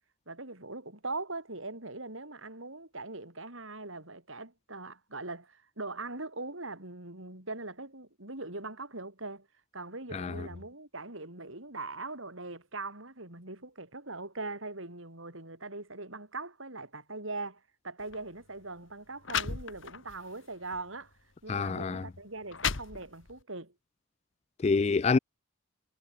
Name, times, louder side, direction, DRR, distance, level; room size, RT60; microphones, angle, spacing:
voice 1, 0.3-9.5 9.7-21.1 21.4-23.7, right 2 dB, 70° right, 5.9 m, -41 dB
voice 2, 10.1-10.5 21.5-22.0 24.6-25.2, left 4 dB, 30° left, 0.3 m, -27 dB
sound 1, 18.0-18.2 18.9-19.0 19.2-20.2 20.7-20.9 21.7-21.8 22.3-23.4, left 7 dB, 65° left, 1.2 m, -34 dB
head